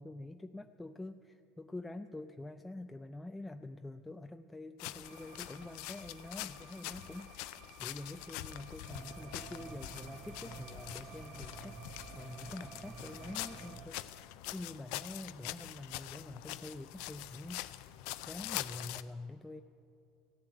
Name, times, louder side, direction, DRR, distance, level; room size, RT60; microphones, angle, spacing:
voice 1, 0.0-11.8 12.1-17.9 18.2-19.6, left 2 dB, 10° left, 7 dB, 0.4 m, -46 dB
sound 1, 4.8-19.0, left 16 dB, 70° left, 0.4 m, -45 dB
sound 2, 5.0-13.8, right 9 dB, 65° right, 0.9 m, -58 dB
sound 3, 8.9-13.9, right 4 dB, 30° right, 1.0 m, -50 dB
15.5 x 7.1 x 8.8 m, 2.6 s
supercardioid pair, 95°, 0 cm